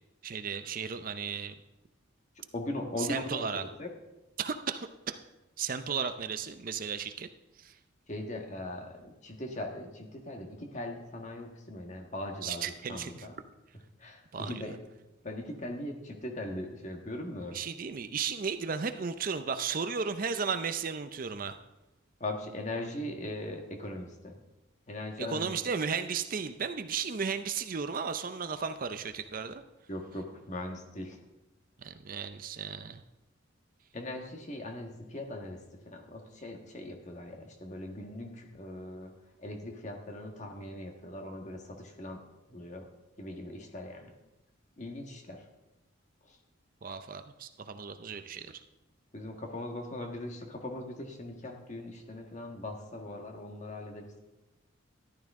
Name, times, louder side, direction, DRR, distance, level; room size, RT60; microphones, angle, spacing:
voice 1, 0.2-1.5 3.0-3.6 4.4-5.2 5.6-7.3 7.6-7.8 12.4-13.3 14.3-14.7 17.5-21.6 25.2-29.6 31.8-33.0 46.8-48.6, right 6 dB, 45° right, 10 dB, 0.5 m, -35 dB
voice 2, 2.5-3.9 8.1-13.4 14.0-14.8 15.2-17.6 22.2-24.4 24.9-25.5 29.9-31.2 33.9-39.1 39.4-42.9 43.2-44.1 44.8-45.4 46.3-46.4 49.1-54.2, left 1 dB, 35° left, 2 dB, 1.5 m, -40 dB
14.0 x 11.5 x 3.6 m, 1.0 s
head